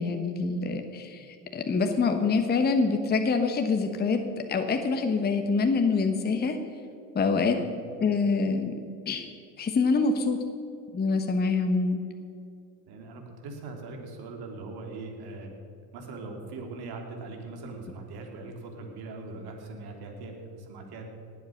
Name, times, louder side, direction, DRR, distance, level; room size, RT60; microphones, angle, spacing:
voice 1, 0.0-4.2 4.5-6.6 7.1-7.6 8.0-8.7 9.1-9.3 9.6-10.4 10.9-12.0, left 4 dB, 20° left, 6 dB, 1.1 m, -25 dB
voice 2, 12.9-15.5 15.9-21.1, right 3 dB, 50° right, 3 dB, 3.2 m, -41 dB
19.5 x 7.9 x 6.4 m, 2.6 s
hypercardioid pair, 95°, 49 cm